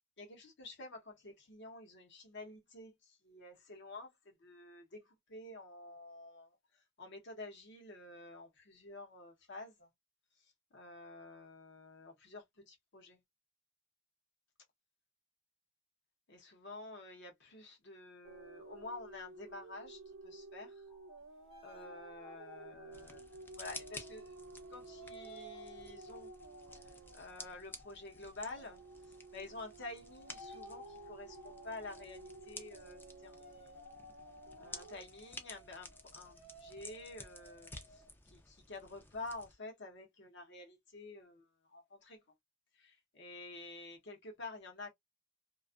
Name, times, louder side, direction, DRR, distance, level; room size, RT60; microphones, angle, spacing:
voice 1, 0.2-9.9 10.4-13.2 16.3-20.8 21.6-24.3 24.7-26.3 26.8-28.8 29.3-33.4 34.5-42.2 42.7-44.9, left 2 dB, 55° left, 0.9 m, -50 dB
sound 1, 18.2-28.0 28.4-35.0, right 3 dB, 65° right, 0.4 m, -54 dB
sound 2, 20.9-24.3 24.8-38.1, left 2 dB, 30° left, 0.8 m, -57 dB
sound 3, 22.9-39.5, left 2 dB, 10° left, 0.4 m, -54 dB
2.5 x 2.3 x 2.3 m
head